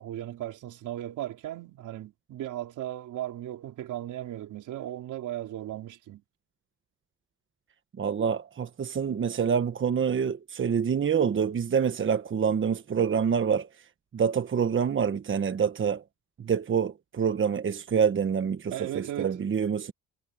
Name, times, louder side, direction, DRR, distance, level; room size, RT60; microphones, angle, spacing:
voice 1, 0.0-6.2 18.7-19.4, right 13 dB, 80° right, 4.2 m, -36 dB
voice 2, 8.0-13.7 14.1-16.0 16.4-19.9, right 7 dB, 40° right, 1.3 m, -26 dB
cardioid pair, 90°, 30 cm